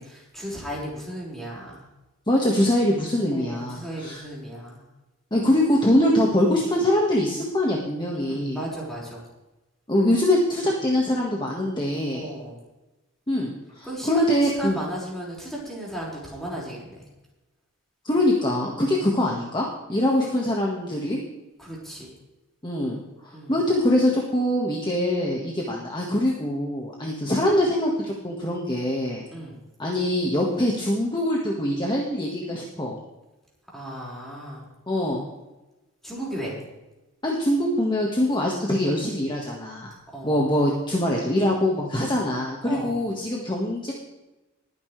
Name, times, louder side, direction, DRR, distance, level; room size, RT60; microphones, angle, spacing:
voice 1, 0.0-1.8 3.3-4.8 8.1-9.3 12.1-12.6 13.8-17.1 18.8-19.1 20.2-20.4 21.6-22.1 23.3-23.6 29.3-29.6 33.7-34.7 36.0-36.6 40.1-40.4 42.6-43.0, right 1 dB, ahead, -5 dB, 5.5 m, -35 dB
voice 2, 2.3-4.2 5.3-8.6 9.9-12.3 13.3-14.8 18.0-21.2 22.6-29.2 29.8-33.0 34.9-35.3 37.2-39.9 40.2-43.9, left 1 dB, 20° left, -2 dB, 1.8 m, -23 dB
21.0 x 9.9 x 3.4 m, 1.0 s
head